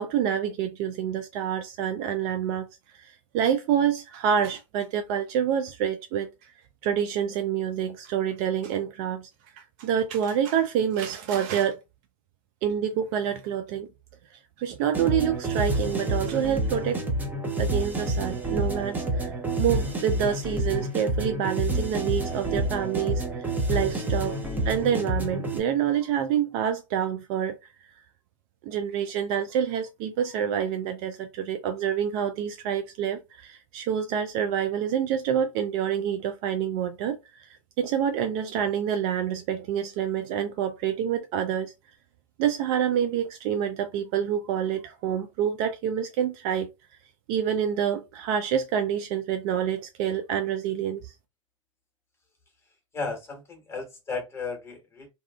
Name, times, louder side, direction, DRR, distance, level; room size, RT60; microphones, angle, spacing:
voice 1, 0.0-2.7 3.0-6.3 6.8-9.3 9.8-11.8 12.6-13.9 14.6-17.0 17.6-24.3 24.7-27.6 28.6-37.5 37.8-41.7 42.4-46.7 47.3-51.1, right 9 dB, 40° right, 0.4 m, -27 dB
sound 1, 14.9-25.6, right 1 dB, 10° right, 0.7 m, -28 dB
voice 2, 52.9-55.1, left 4 dB, 15° left, 1.2 m, -34 dB
2.6 x 2.3 x 2.2 m
figure-of-eight pair, 95°, 17 cm